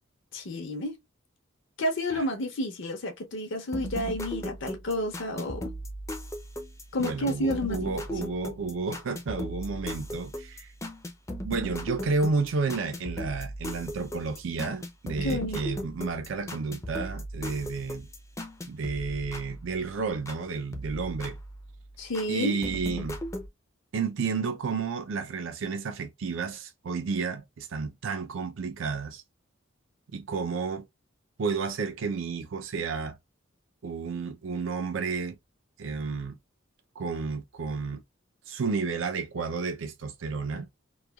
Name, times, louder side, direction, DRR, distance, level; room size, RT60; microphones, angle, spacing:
voice 1, 0.3-0.9 1.8-5.7 6.9-7.9 15.2-15.6 22.0-22.6, left 1 dB, 65° left, 0.6 m, -30 dB
sound 1, 3.7-20.4 20.7-22.3 22.6-23.5, equal, 15° left, 0.4 m, -38 dB
voice 2, 7.0-10.7 11.4-18.1 18.7-21.4 22.3-23.2 23.9-29.2 30.1-30.9 31.4-33.2 33.8-35.4 35.8-36.3 37.0-38.0 38.5-40.7, right 4 dB, 65° right, 0.4 m, -31 dB
3.1 x 2.2 x 2.2 m
head